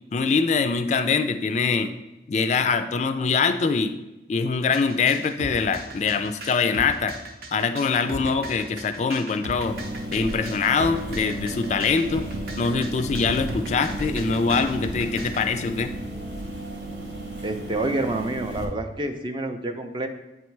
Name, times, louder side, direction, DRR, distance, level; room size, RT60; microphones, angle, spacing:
voice 1, 0.1-1.9 2.3-3.9 4.3-7.2 7.5-9.8 10.1-12.2 12.6-15.9, left 5 dB, 40° left, 9 dB, 0.3 m, -23 dB
sound 1, 4.7-15.4, right 1 dB, 55° right, 0.8 m, -38 dB
sound 2, 9.7-18.7, right 1 dB, 75° right, 1.4 m, -34 dB
voice 2, 17.4-20.1, right 2 dB, 25° right, 7 dB, 0.5 m, -28 dB
7.8 x 3.2 x 4.5 m, 0.99 s
head